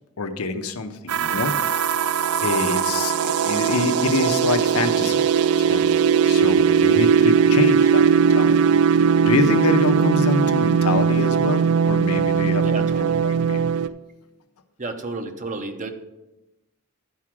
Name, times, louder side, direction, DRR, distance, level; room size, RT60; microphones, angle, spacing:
voice 1, 0.2-1.5 2.4-5.3 5.6-5.9 6.2-8.7 9.2-13.6, left 3 dB, 90° left, 8 dB, 0.8 m, -26 dB
sound 1, 1.1-13.9, right 7 dB, 80° right, 0.4 m, -19 dB
voice 2, 12.6-13.2 14.8-15.9, right 3 dB, 35° right, 6 dB, 0.8 m, -32 dB
11.5 x 4.9 x 6.0 m, 1.0 s
head